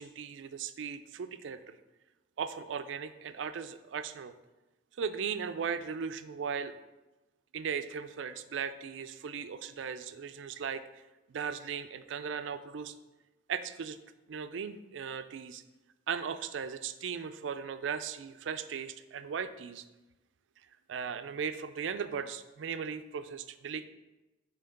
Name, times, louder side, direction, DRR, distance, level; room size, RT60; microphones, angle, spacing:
voice 1, 0.0-1.8 2.4-4.3 5.0-6.7 7.5-10.8 11.3-12.9 13.5-14.0 14.3-15.6 16.1-19.8 20.9-23.9, right 6 dB, 85° right, 11 dB, 0.4 m, -37 dB
5.6 x 3.6 x 5.1 m, 1.1 s
head